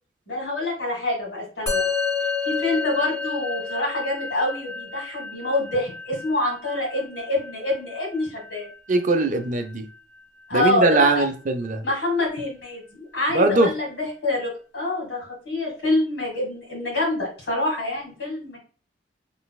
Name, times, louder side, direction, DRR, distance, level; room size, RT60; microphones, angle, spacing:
voice 1, 0.3-1.9 2.4-8.7 10.5-11.3 11.8-18.6, left 2 dB, 85° left, -2 dB, 2.0 m, -26 dB
Musical instrument, 1.7-11.2, left 5 dB, 20° left, 1.8 m, -31 dB
voice 2, 8.9-9.8 10.5-11.8 13.3-13.7, right 2 dB, 45° right, 6 dB, 0.5 m, -20 dB
4.0 x 3.3 x 2.3 m, 0.39 s
head